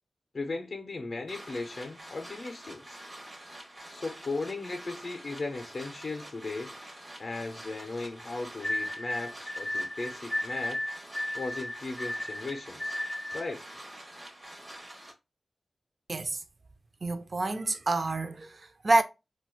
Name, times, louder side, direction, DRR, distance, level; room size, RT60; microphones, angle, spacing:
voice 1, 0.3-3.0 3.9-6.8 7.2-10.8 11.3-13.0 13.3-13.6, left 3 dB, 55° left, 0.5 m, -37 dB
sound 1, 1.3-15.1, right 1 dB, 35° right, 1.0 m, -47 dB
sound 2, 8.6-13.5, left 1 dB, 5° left, 0.9 m, -34 dB
voice 2, 16.1-16.4 17.0-19.0, right 2 dB, 55° right, 0.4 m, -28 dB
4.2 x 2.2 x 2.3 m
cardioid pair, 60°, 0 cm